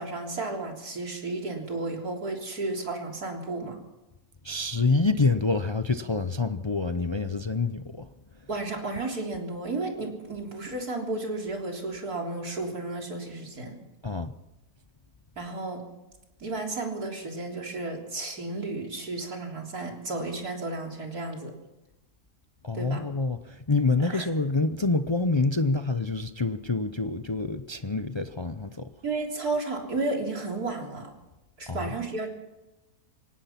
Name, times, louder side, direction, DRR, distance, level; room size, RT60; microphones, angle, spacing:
voice 1, 0.0-3.8 8.5-13.8 15.4-15.8 16.4-21.5 22.7-23.0 24.0-24.3 29.0-31.1 31.6-32.3, right 2 dB, 75° right, 4.1 m, -33 dB
voice 2, 4.4-8.1 14.0-14.3 22.6-28.9 31.7-31.9, left 3 dB, 40° left, 0.3 m, -27 dB
25.0 x 18.5 x 5.9 m
omnidirectional pair, 1.6 m